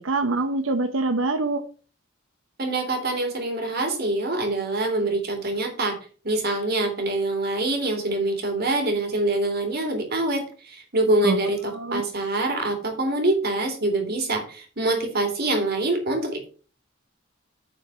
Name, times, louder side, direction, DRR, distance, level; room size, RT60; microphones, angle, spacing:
voice 1, 0.0-1.6 11.2-11.4 11.7-12.0, right 3 dB, 65° right, 0.9 m, -24 dB
voice 2, 2.6-6.0 6.2-16.5, right 2 dB, 50° right, 3.2 m, -25 dB
9.5 x 5.2 x 6.1 m
head